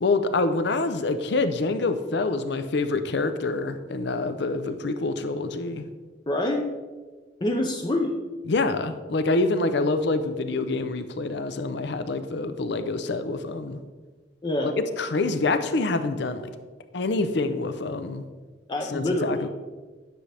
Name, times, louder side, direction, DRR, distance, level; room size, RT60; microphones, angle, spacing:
voice 1, 0.0-5.9 8.5-13.8 14.8-16.4 16.9-18.2 18.9-19.5, left 3 dB, 65° left, 10 dB, 0.6 m, -26 dB
voice 2, 6.3-6.7 7.4-8.2 14.4-14.7 18.7-19.5, left 1 dB, 25° left, 1 dB, 0.6 m, -26 dB
9.8 x 6.4 x 3.4 m, 1.3 s
head